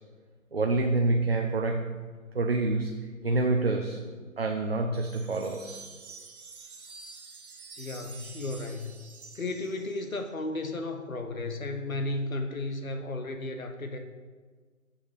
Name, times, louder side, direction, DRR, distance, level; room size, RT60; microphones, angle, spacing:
voice 1, 0.5-2.0 2.3-5.9, right 2 dB, 45° right, 2 dB, 0.7 m, -27 dB
sound 1, 4.9-10.3, right 4 dB, 85° right, 1.4 m, -48 dB
voice 2, 7.8-8.9 9.3-14.0, left 2 dB, 75° left, 6 dB, 1.3 m, -34 dB
7.2 x 6.8 x 5.0 m, 1.5 s
hypercardioid pair, 175°, 42 cm